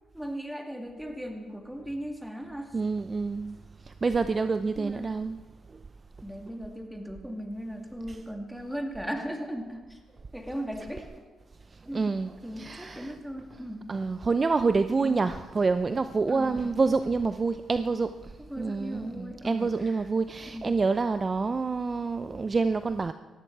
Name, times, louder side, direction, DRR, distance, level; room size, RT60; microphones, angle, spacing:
voice 1, 0.1-2.8 4.7-5.2 6.2-10.0 10.3-11.1 11.9-12.2 12.4-13.9 15.0-15.3 16.3-16.7 18.5-20.1 20.5-20.8, equal, 5° right, 3 dB, 2.4 m, -37 dB
voice 2, 2.7-3.6 3.8-5.4 11.9-12.3 12.6-13.1 13.9-23.1, right 4 dB, 30° right, 11 dB, 0.5 m, -27 dB
18.0 x 15.0 x 4.7 m, 1.3 s
cardioid pair, 85°, 0 cm